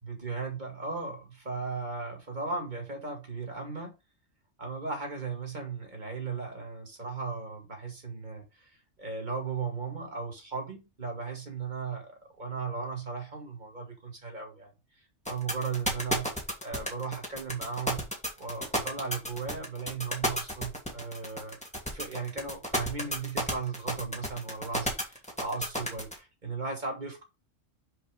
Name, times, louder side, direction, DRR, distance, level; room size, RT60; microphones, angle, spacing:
voice 1, 0.0-3.9 4.6-16.3 16.6-18.1 18.4-21.6 21.9-27.2, right 4 dB, 35° right, 2.3 m, -36 dB
sound 1, 15.2-26.1, equal, 5° left, 1.8 m, -31 dB
5.5 x 5.0 x 5.0 m
omnidirectional pair, 1.3 m